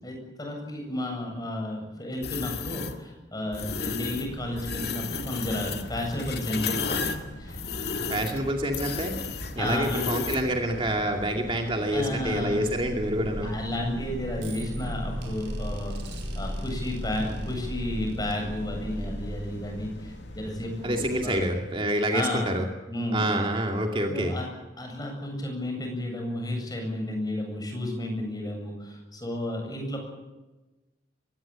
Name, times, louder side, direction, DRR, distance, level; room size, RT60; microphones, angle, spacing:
voice 1, 0.0-7.6 9.6-10.1 11.9-12.6 13.4-21.4 22.1-22.5 22.9-23.3 24.1-24.5 24.8-30.0, left 1 dB, 20° left, 2 dB, 8.0 m, -32 dB
sound 1, 2.2-3.0 3.5-4.3 4.6-10.5, left 5 dB, 60° left, 2.4 m, -33 dB
sound 2, 3.6-21.5, left 1 dB, 75° left, 2.5 m, -44 dB
voice 2, 8.1-9.2 9.5-13.5 20.8-22.6 23.1-24.3, right 1 dB, 30° right, 2 dB, 2.4 m, -27 dB
sound 3, 11.9-20.4, equal, 80° right, 5.0 m, -36 dB
23.5 x 19.5 x 8.8 m, 1.1 s
head